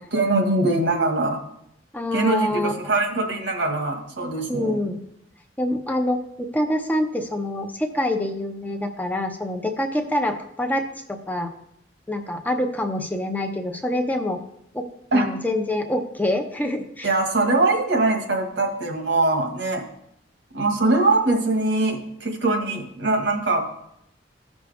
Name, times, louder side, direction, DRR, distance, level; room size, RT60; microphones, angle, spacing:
voice 1, 0.1-1.4 2.1-4.8 15.1-15.3 17.0-19.8 20.5-23.6, right 2 dB, 70° right, 3 dB, 1.7 m, -22 dB
voice 2, 1.9-2.7 4.5-5.0 5.6-11.5 12.1-14.4 14.7-14.9 15.1-17.1, left 1 dB, 10° left, 4 dB, 0.8 m, -26 dB
15.5 x 6.2 x 3.5 m, 0.77 s
head